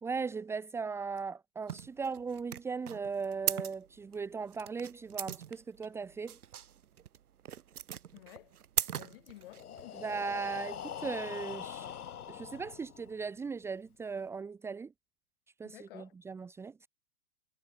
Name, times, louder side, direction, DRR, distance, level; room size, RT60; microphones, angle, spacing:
voice 1, 0.0-6.4 9.9-11.9 12.3-14.9 15.6-16.9, right 5 dB, 5° right, 2.3 m, -38 dB
sound 1, 1.7-9.8, right 9 dB, 80° right, 3.7 m, -39 dB
voice 2, 8.1-8.5 8.9-10.0 15.6-16.1, left 16 dB, 40° left, 7.9 m, -53 dB
Breathing, 9.4-13.3, left 9 dB, 85° left, 4.4 m, -43 dB
hypercardioid pair, 175°, 44 cm